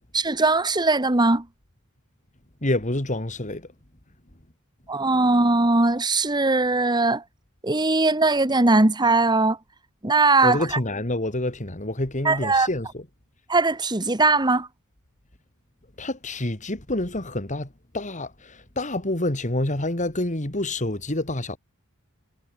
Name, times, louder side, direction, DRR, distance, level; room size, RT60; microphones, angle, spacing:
voice 1, 0.1-1.5 4.9-7.2 7.6-9.6 10.0-10.8 12.2-12.7 13.5-14.7, right 3 dB, 20° right, 1.4 m, -20 dB
voice 2, 2.6-3.7 10.4-13.0 16.0-17.7 17.9-21.6, left 1 dB, 35° left, 2.9 m, -27 dB
head